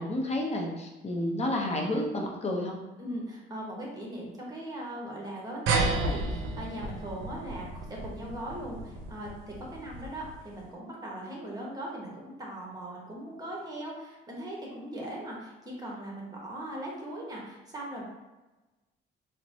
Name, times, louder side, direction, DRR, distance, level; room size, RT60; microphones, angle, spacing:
voice 1, 0.0-2.8, left 1 dB, 35° left, 0 dB, 0.7 m, -30 dB
voice 2, 3.0-18.0, right 1 dB, 20° right, -2 dB, 1.1 m, -39 dB
sound 1, 5.7-10.5, right 3 dB, 85° right, 0.5 m, -32 dB
4.1 x 2.2 x 2.7 m, 1.1 s
cardioid pair, 90°, 20 cm